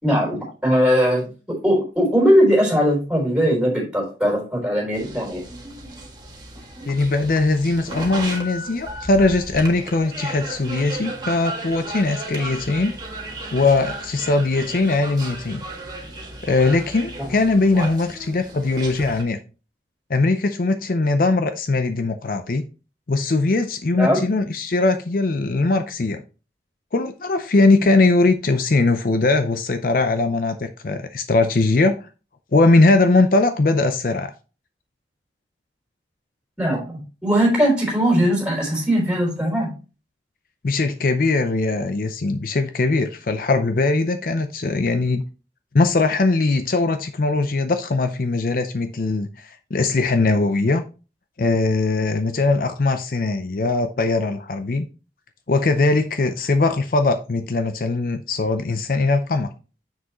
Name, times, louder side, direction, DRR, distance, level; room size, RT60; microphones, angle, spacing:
voice 1, 0.0-5.4 24.0-24.2 36.6-39.7, equal, 5° right, 3.7 m, -20 dB
sound 1, 4.9-19.2, right 2 dB, 25° right, 1.5 m, -35 dB
voice 2, 6.9-12.9 13.5-15.6 16.4-19.4 20.1-22.6 23.1-26.2 26.9-32.1 32.5-34.3 40.6-45.2 45.7-50.8 51.4-54.9 55.5-59.5, left 3 dB, 50° left, 0.5 m, -20 dB
7.2 x 6.2 x 3.0 m
head